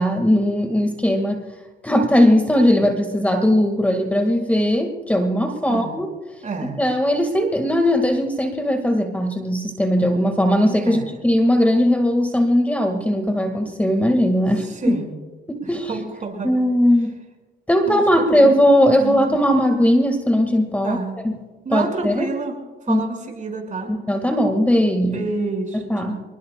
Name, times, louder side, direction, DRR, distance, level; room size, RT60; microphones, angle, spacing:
voice 1, 0.0-1.4 1.8-6.1 6.8-14.9 15.5-16.0 16.4-17.1 17.7-21.0 21.2-21.4 21.7-22.3 22.9-23.0 23.9-25.2 25.7-26.2, equal, 5° left, 5 dB, 1.7 m, -19 dB
voice 2, 6.4-6.8 10.9-11.1 14.6-15.2 15.6-16.5 17.9-18.0 18.4-18.5 19.0-19.1 20.8-21.2 21.6-22.6 22.9-23.9 25.1-26.2, right 3 dB, 40° right, 1 dB, 5.4 m, -29 dB
27.0 x 20.0 x 2.3 m, 1.3 s
cardioid pair, 90°, 20 cm